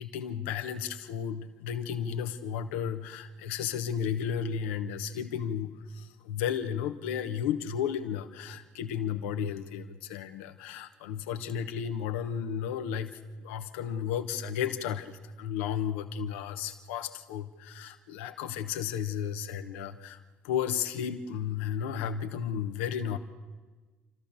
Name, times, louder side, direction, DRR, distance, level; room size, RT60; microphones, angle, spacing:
voice 1, 0.0-20.2 20.4-23.2, left 8 dB, 80° left, 8 dB, 1.1 m, -33 dB
29.0 x 13.0 x 7.0 m, 1.3 s
hypercardioid pair, 55°, 7 cm